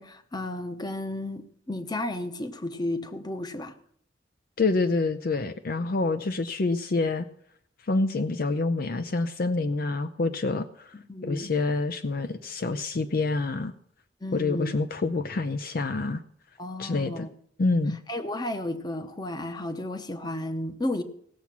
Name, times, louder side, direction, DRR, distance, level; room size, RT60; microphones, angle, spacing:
voice 1, 0.0-3.7 10.9-11.5 14.2-14.7 16.6-17.3 18.1-21.0, left 1 dB, 20° left, 9 dB, 0.9 m, -33 dB
voice 2, 4.6-7.3 7.8-10.9 11.2-13.7 14.3-16.2 16.8-17.3 17.6-18.0, left 3 dB, 50° left, 10 dB, 0.5 m, -27 dB
18.0 x 7.2 x 6.0 m, 0.66 s
head